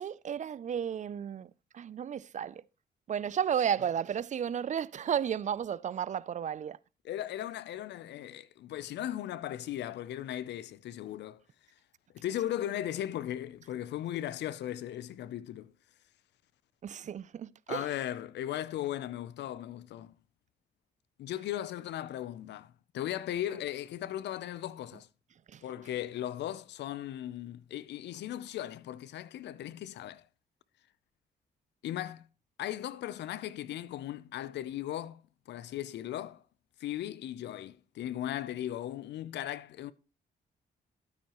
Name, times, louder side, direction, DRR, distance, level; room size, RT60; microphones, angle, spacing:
voice 1, 0.0-2.6 3.1-6.8 16.8-17.9 25.5-25.6, right 8 dB, 45° right, 0.4 m, -33 dB
voice 2, 7.0-11.4 12.1-15.7 17.7-20.2 21.2-25.1 25.6-30.2 31.8-32.3 32.6-35.2 35.5-36.4 36.8-39.9, left 12 dB, 80° left, 0.6 m, -37 dB
12.0 x 8.9 x 3.0 m
cardioid pair, 80°, 18 cm